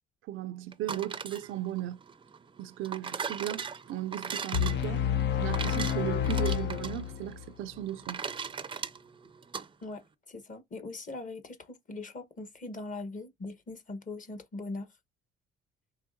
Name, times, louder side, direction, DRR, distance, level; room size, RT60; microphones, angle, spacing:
voice 1, 0.3-2.0 2.6-5.0 5.4-8.2, right 13 dB, 85° right, 0.4 m, -36 dB
sound 1, 0.7-9.7, right 6 dB, 25° right, 0.4 m, -39 dB
sound 2, 4.5-7.5, left 9 dB, 65° left, 0.6 m, -29 dB
voice 2, 9.8-14.9, left 2 dB, 40° left, 1.2 m, -41 dB
4.6 x 3.2 x 2.7 m
cardioid pair, 90°, 20 cm